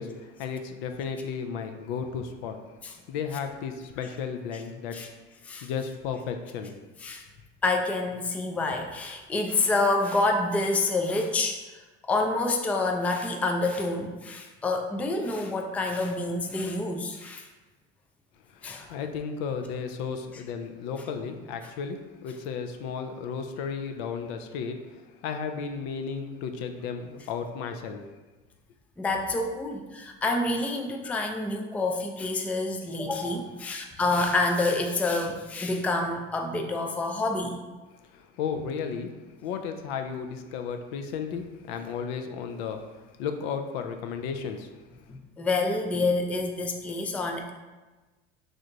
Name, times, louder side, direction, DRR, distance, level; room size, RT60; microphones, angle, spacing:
voice 1, 0.0-2.6 3.1-5.1 5.6-6.7 18.6-28.0 38.1-39.1 39.4-42.8 43.2-44.7, left 6 dB, 70° left, 6 dB, 0.5 m, -34 dB
voice 2, 7.6-11.6 12.0-17.5 18.6-18.9 29.0-37.6 45.1-47.5, left 2 dB, 5° left, 3 dB, 0.3 m, -27 dB
3.4 x 2.6 x 3.8 m, 1.2 s
hypercardioid pair, 80°, 31 cm